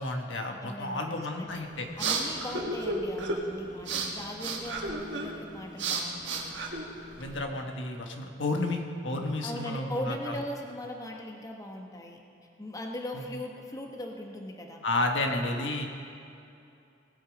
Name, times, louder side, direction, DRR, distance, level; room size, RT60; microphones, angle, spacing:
voice 1, 0.0-1.9 7.2-10.4 14.8-15.9, left 2 dB, 85° left, 3 dB, 1.3 m, -31 dB
voice 2, 0.6-1.6 2.0-6.6 9.4-12.2 12.6-14.8, left 1 dB, 20° left, 1 dB, 1.0 m, -39 dB
sound 1, 1.5-7.4, right 3 dB, 80° right, 1.5 m, -33 dB
18.5 x 8.1 x 5.2 m, 2.6 s
head